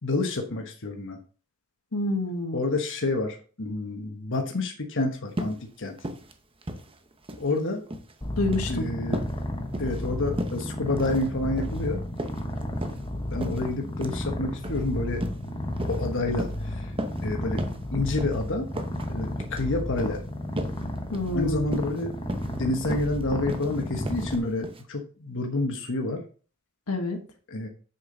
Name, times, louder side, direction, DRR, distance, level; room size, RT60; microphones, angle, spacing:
voice 1, 0.0-1.2 2.5-6.0 7.4-7.8 8.7-9.2 9.8-12.0 13.3-15.2 15.9-16.9 17.2-17.6 17.9-18.7 19.1-20.2 21.3-22.1 22.5-26.2 27.5-27.7, left 2 dB, 60° left, 3 dB, 1.3 m, -29 dB
voice 2, 1.9-2.6 8.4-8.9 21.1-21.6 26.9-27.2, left 2 dB, 85° left, 5 dB, 1.4 m, -27 dB
sound 1, 5.3-5.6 6.0-6.3 6.6-7.5 7.8-8.1 8.4-8.7 9.1-9.4 9.7-10.0 10.4-10.6 11.0-11.3 11.6-11.8 12.2-13.0 13.4-13.6 14.0-14.2 14.6-14.8 15.2-15.4 15.8-16.1 16.4-16.6 17.0-17.2 17.6-17.8 18.2-18.4 18.7-19.1 19.4-19.6 20.0-20.2 20.6-20.8 21.1-21.3 21.7-22.0 22.3-22.6 22.9-23.2 23.5-23.7 24.1-24.4 24.6-24.8, right 1 dB, 25° right, 0.9 m, -34 dB
Purr, 8.2-24.4, left 1 dB, 25° left, 1.1 m, -32 dB
7.2 x 6.8 x 4.0 m, 0.38 s
head